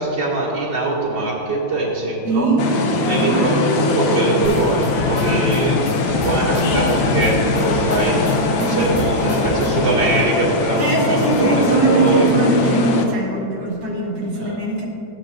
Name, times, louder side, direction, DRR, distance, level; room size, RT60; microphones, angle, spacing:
voice 1, 0.0-2.5 3.1-12.3 14.4-14.6, right 2 dB, 70° right, -6 dB, 2.8 m, -22 dB
voice 2, 2.2-2.6 3.0-3.5 8.6-9.5 10.7-14.8, right 3 dB, 55° right, -6 dB, 2.7 m, -21 dB
sound 1, 2.6-13.1, left 3 dB, 80° left, 1.6 m, -21 dB
sound 2, 4.4-9.9, equal, 35° left, 2.9 m, -30 dB
16.5 x 10.0 x 2.6 m, 2.9 s
omnidirectional pair, 2.0 m